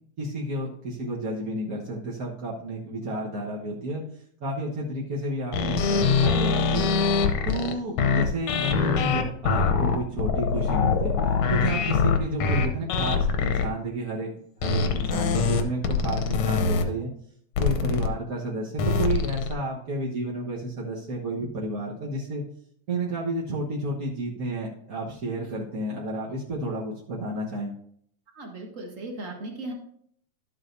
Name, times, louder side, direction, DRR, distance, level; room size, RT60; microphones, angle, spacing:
voice 1, 0.2-4.0 4.4-6.9 7.4-11.2 11.5-14.3 14.6-17.1 17.6-22.4 22.9-27.7, right 1 dB, 55° right, -4 dB, 1.0 m, -31 dB
sound 1, 5.5-13.7 14.6-16.8 17.6-18.1 18.8-19.5, left 5 dB, 70° left, 1.8 m, -23 dB
voice 2, 28.3-29.7, right 2 dB, 35° right, 1 dB, 1.3 m, -37 dB
12.0 x 8.1 x 2.7 m, 0.67 s
omnidirectional pair, 3.5 m